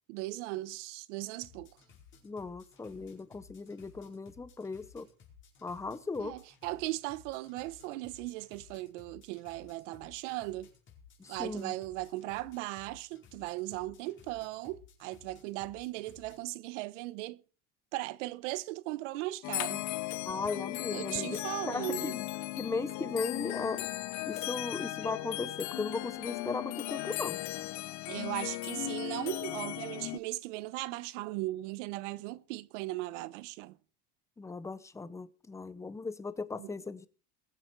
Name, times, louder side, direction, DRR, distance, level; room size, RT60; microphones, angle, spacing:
voice 1, 0.1-1.7 6.2-10.7 11.3-17.4 17.9-19.8 20.9-22.1 28.1-33.8 36.6-36.7, right 18 dB, 85° right, 1.0 m, -38 dB
sound 1, 1.4-16.4, left 7 dB, 35° left, 4.8 m, -58 dB
voice 2, 2.2-5.1 5.6-6.4 11.2-11.7 20.2-21.4 21.6-22.3 22.6-23.9 24.3-27.4 34.4-37.1, left 4 dB, 10° left, 0.8 m, -37 dB
sound 2, 19.4-30.2, left 19 dB, 50° left, 0.8 m, -37 dB
21.5 x 8.5 x 4.6 m
cardioid pair, 145°, 36 cm